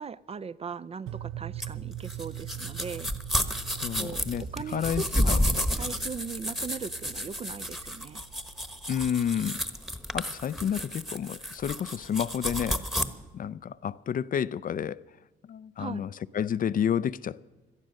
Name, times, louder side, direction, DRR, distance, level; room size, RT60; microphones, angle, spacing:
voice 1, 0.0-3.1 4.0-5.4 5.7-8.2 15.8-16.1, right 5 dB, 30° right, 0.4 m, -39 dB
sound 1, 1.1-9.2, right 13 dB, 90° right, 0.6 m, -43 dB
sound 2, 1.6-13.0, equal, ahead, 1.1 m, -31 dB
voice 2, 3.6-5.4 8.9-9.6 10.1-12.8 13.3-15.0 15.5-17.4, left 8 dB, 45° left, 0.5 m, -30 dB
18.0 x 12.0 x 6.4 m
cardioid pair, 90°, 20 cm